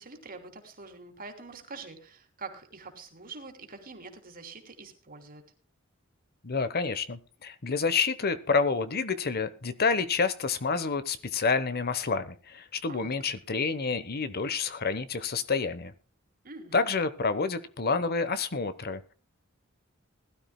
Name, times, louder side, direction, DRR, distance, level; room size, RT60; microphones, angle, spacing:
voice 1, 0.0-5.5 12.9-13.1 16.4-16.9, right 3 dB, 45° right, 6 dB, 3.0 m, -45 dB
voice 2, 6.4-15.9 16.7-19.1, left 4 dB, 50° left, 13 dB, 1.0 m, -28 dB
20.5 x 12.5 x 2.2 m, 0.37 s
head